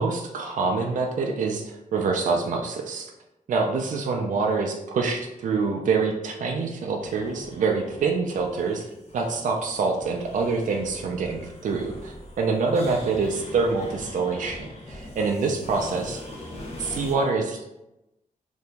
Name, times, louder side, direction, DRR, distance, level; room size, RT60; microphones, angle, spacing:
voice 1, 0.0-3.1 3.5-16.2 16.8-17.7, right 4 dB, 65° right, 1 dB, 0.4 m, -26 dB
sound 1, 7.0-17.1, left 1 dB, 50° left, 0.8 m, -42 dB
2.8 x 2.6 x 3.3 m, 0.93 s
wide cardioid pair, 150°, 14 cm